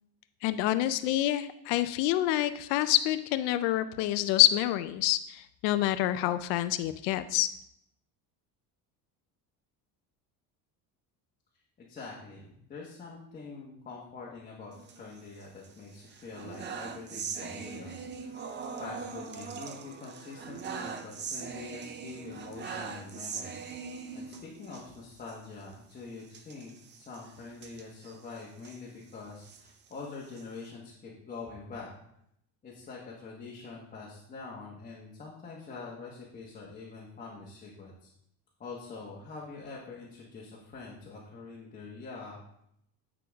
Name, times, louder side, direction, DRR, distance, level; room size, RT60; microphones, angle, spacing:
voice 1, 0.4-7.5, left 14 dB, 80° left, 11 dB, 0.5 m, -27 dB
voice 2, 11.8-18.4 18.8-23.6 24.1-31.9 32.6-38.1 38.6-42.4, left 4 dB, 20° left, -4 dB, 1.1 m, -45 dB
sound 1, 14.7-15.7 16.1-24.8 25.2-25.4 25.6-25.7 26.3-28.8 29.3-30.7, right 5 dB, 25° right, 0.5 m, -41 dB
9.2 x 4.9 x 3.5 m, 0.76 s
cardioid pair, 155°, 41 cm